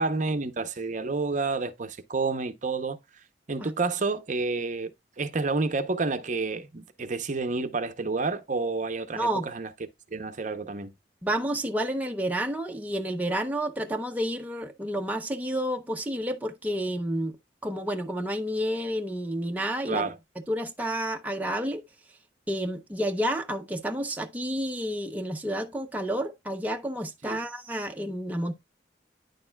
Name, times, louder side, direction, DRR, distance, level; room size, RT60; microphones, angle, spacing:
voice 1, 0.0-3.0 3.5-4.9 5.2-9.7 10.1-10.9 19.9-20.2 27.2-27.4, right 3 dB, 45° right, 0.7 m, -29 dB
voice 2, 9.1-9.5 11.2-17.3 17.6-20.0 20.5-21.8 22.5-28.5, right 1 dB, 10° right, 0.6 m, -30 dB
9.6 x 6.6 x 2.2 m
head